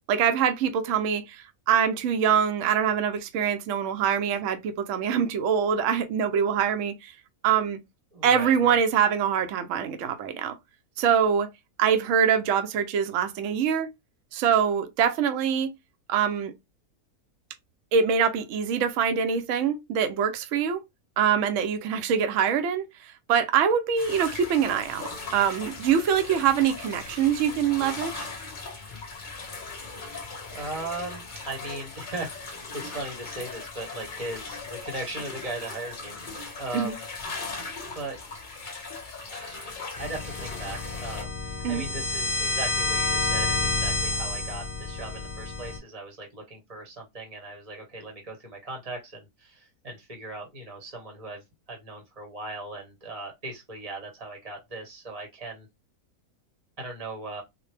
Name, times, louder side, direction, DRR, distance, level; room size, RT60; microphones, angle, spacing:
voice 1, 0.1-7.1 7.4-7.8 8.2-10.6 11.0-11.5 11.8-13.9 14.3-15.7 16.1-16.5 17.9-20.8 21.2-28.3 36.7-36.9 41.6-41.8, right 7 dB, 65° right, 0.9 m, -24 dB
voice 2, 8.1-8.8 30.5-37.0 37.9-38.3 39.3-55.7 56.8-57.4, right 2 dB, 30° right, 0.8 m, -38 dB
sound 1, 24.0-41.2, left 4 dB, 40° left, 0.8 m, -39 dB
sound 2, 40.0-45.8, left 3 dB, 10° left, 1.1 m, -29 dB
3.8 x 2.2 x 3.2 m
omnidirectional pair, 1.7 m